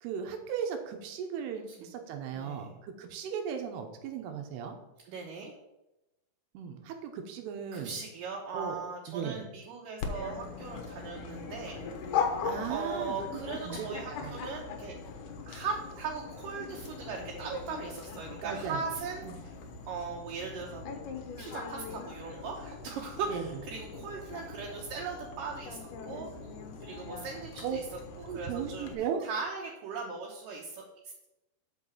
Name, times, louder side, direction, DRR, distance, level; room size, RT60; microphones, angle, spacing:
voice 1, 0.0-4.8 6.5-8.0 8.5-8.8 9.1-9.4 12.4-13.9 14.2-14.4 18.4-18.8 19.2-19.4 23.3-23.5 27.6-27.8 28.2-29.2, right 7 dB, 90° right, 5 dB, 3.0 m, -37 dB
voice 2, 2.3-2.7 5.1-5.5 7.7-11.7 12.7-14.9 15.4-19.5 19.9-21.0 21.4-25.8 26.1-26.3 26.8-27.8 28.3-28.9 29.2-30.8, right 5 dB, 70° right, -1 dB, 2.3 m, -39 dB
Dog, 10.0-28.9, left 5 dB, 70° left, 2.0 m, -40 dB
6.2 x 5.8 x 7.1 m, 0.95 s
omnidirectional pair, 4.6 m